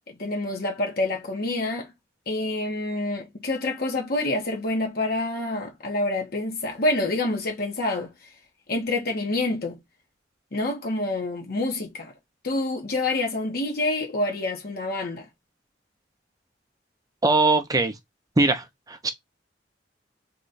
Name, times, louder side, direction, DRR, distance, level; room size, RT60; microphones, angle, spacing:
voice 1, 0.1-1.9 2.3-8.1 8.7-9.8 10.5-12.1 12.4-15.3, left 2 dB, 55° left, 0.9 m, -27 dB
voice 2, 17.2-17.9 18.4-19.1, right 2 dB, 20° right, 0.5 m, -21 dB
2.9 x 2.3 x 3.9 m
head